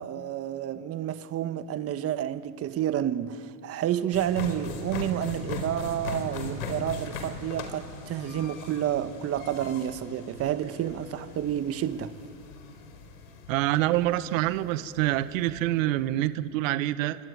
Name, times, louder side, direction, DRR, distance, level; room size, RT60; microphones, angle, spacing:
voice 1, 0.0-12.1, right 11 dB, 35° right, 1.3 m, -30 dB
sound 1, 4.1-16.1, left 3 dB, 80° left, 4.7 m, -40 dB
voice 2, 13.5-17.2, right 15 dB, 70° right, 1.2 m, -26 dB
26.5 x 22.0 x 9.3 m
hypercardioid pair, 105°, 41 cm